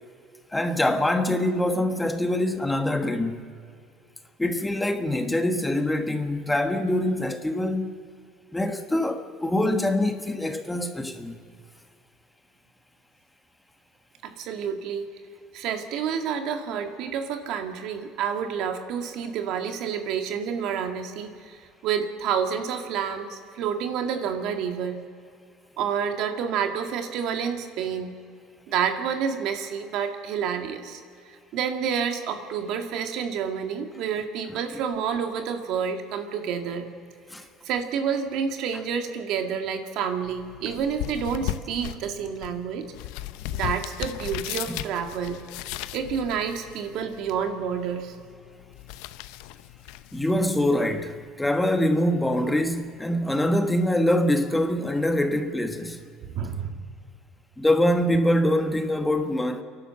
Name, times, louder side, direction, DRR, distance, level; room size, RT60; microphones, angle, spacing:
voice 1, 0.5-3.5 4.4-8.0 8.5-11.4 37.3-37.4 44.7-44.8 50.1-56.0 57.6-59.6, left 1 dB, 10° left, 1.4 m, -24 dB
voice 2, 14.2-15.1 15.5-25.0 25.8-28.1 28.7-31.0 31.3-36.9 37.7-42.9 43.5-45.4 45.9-48.2 56.2-56.8, right 7 dB, 65° right, 2.0 m, -29 dB
sound 1, 40.2-51.2, left 14 dB, 80° left, 0.7 m, -37 dB
28.5 x 11.5 x 7.8 m
supercardioid pair, 110°, 0 cm